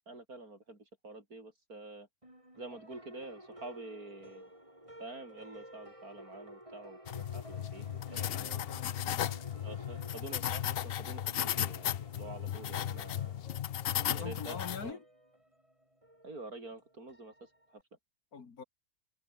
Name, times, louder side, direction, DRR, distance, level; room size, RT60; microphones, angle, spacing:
voice 1, 0.1-2.1 2.6-4.5 5.0-7.9 8.1-8.6 9.6-13.5 13.9-15.0 16.2-17.8, right 2 dB, 75° right, 6.0 m, -48 dB
sound 1, 2.2-17.8, right 1 dB, 20° right, 8.2 m, -54 dB
sound 2, 7.1-14.9, left 11 dB, 60° left, 0.6 m, -36 dB
voice 2, 8.3-9.3 13.9-15.0 18.3-18.6, left 5 dB, 80° left, 2.7 m, -45 dB
omnidirectional pair, 1.6 m